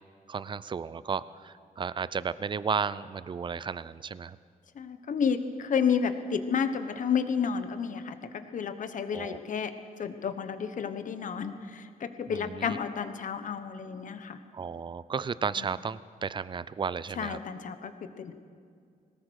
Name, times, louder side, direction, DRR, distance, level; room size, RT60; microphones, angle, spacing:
voice 1, 0.3-4.4 9.1-9.4 12.3-12.8 14.5-17.4, right 6 dB, 30° right, 17 dB, 0.5 m, -33 dB
voice 2, 4.7-9.7 10.0-14.4 15.6-15.7 17.1-17.9 18.2-18.3, left 6 dB, 60° left, 9 dB, 1.2 m, -31 dB
21.5 x 18.5 x 6.5 m, 2.2 s
wide cardioid pair, 155°, 15 cm